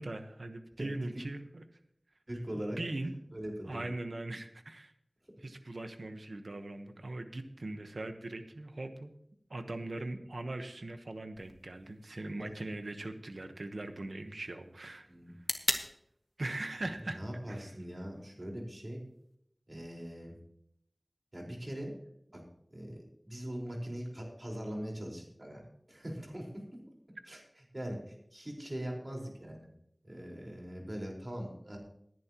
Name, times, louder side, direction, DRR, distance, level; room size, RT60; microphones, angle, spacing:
voice 1, 0.0-1.6 2.5-3.2 3.6-4.9 5.4-9.1 9.5-15.1 16.4-17.2 17.5-17.7, right 2 dB, 90° right, 7 dB, 1.1 m, -40 dB
voice 2, 2.3-2.8 3.3-3.9 15.1-15.3 17.0-19.0 19.7-20.3 21.3-21.9 22.3-22.4 22.7-25.6 25.9-26.6 27.3-27.4 27.7-29.7 30.0-31.8, equal, 45° right, -1 dB, 4.6 m, -41 dB
sound 1, 11.4-19.4, equal, 10° left, 1.7 m, -43 dB
19.5 x 10.5 x 3.0 m, 0.72 s
wide cardioid pair, 40°, 0 cm